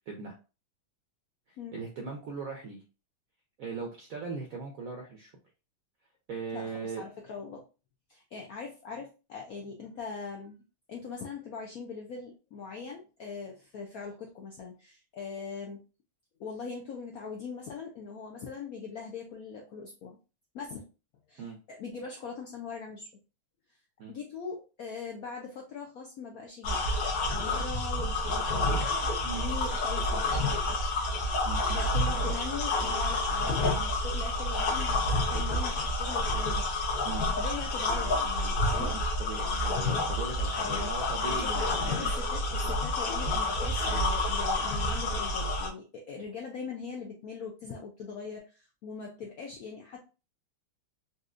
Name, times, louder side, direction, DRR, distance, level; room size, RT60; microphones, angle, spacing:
voice 1, 1.5-2.8 3.6-5.3 6.3-7.0 21.4-21.6 24.0-24.1 29.2-29.4 31.4-31.6 37.0-37.3 38.8-42.1 42.6-42.7, right 4 dB, 75° right, 1 dB, 0.8 m, -39 dB
voice 2, 6.5-7.6 8.1-10.6 10.9-15.8 16.4-20.2 20.5-20.9 21.3-23.1 24.1-26.8 27.2-28.8 29.3-30.9 31.7-36.7 37.3-38.9 40.6-40.9 41.2-50.1, left 5 dB, 75° left, 0 dB, 0.8 m, -41 dB
sound 1, 26.6-45.7, left 2 dB, 60° left, 1.0 m, -29 dB
4.1 x 2.3 x 2.5 m, 0.31 s
omnidirectional pair, 2.2 m